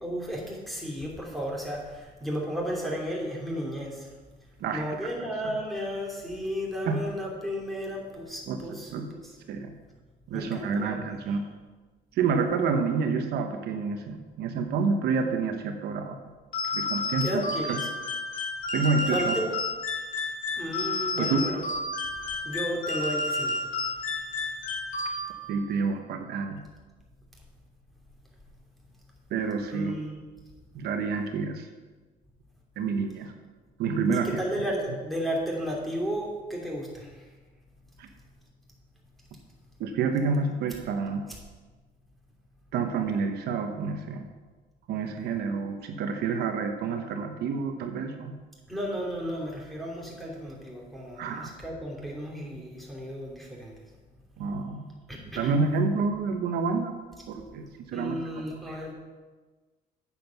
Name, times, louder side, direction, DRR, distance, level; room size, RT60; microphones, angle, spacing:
voice 1, 0.0-4.1 4.7-9.3 10.3-11.0 17.2-17.9 19.1-19.4 20.6-21.6 22.4-23.7 29.7-30.2 34.1-37.3 48.7-53.7 55.1-55.6 57.9-58.9, equal, ahead, -2 dB, 3.0 m, -33 dB
voice 2, 4.6-5.1 5.4-5.5 6.9-7.0 8.5-9.1 9.5-9.8 10.3-11.4 12.1-16.3 16.7-17.8 18.7-19.4 21.2-21.4 25.5-26.6 29.3-29.9 30.7-31.7 32.8-33.3 33.8-34.3 38.0-38.1 39.8-41.2 42.7-44.3 44.9-48.4 51.2-51.5 54.4-54.9 55.4-56.9 57.3-58.8, right 5 dB, 75° right, 5 dB, 1.1 m, -29 dB
sound 1, 16.5-25.6, left 2 dB, 50° left, 2.6 m, -31 dB
9.3 x 7.6 x 5.9 m, 1.3 s
cardioid pair, 110°, 17 cm